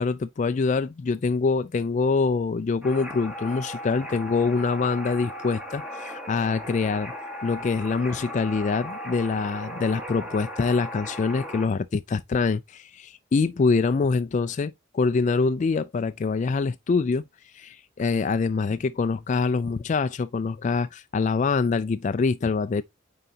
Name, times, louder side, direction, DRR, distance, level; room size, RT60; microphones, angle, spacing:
voice 1, 0.0-7.1 7.4-17.2 17.5-22.8, left 4 dB, 40° left, 0.3 m, -25 dB
sound 1, 2.8-11.7, equal, 5° right, 1.4 m, -37 dB
9.0 x 4.0 x 2.7 m
head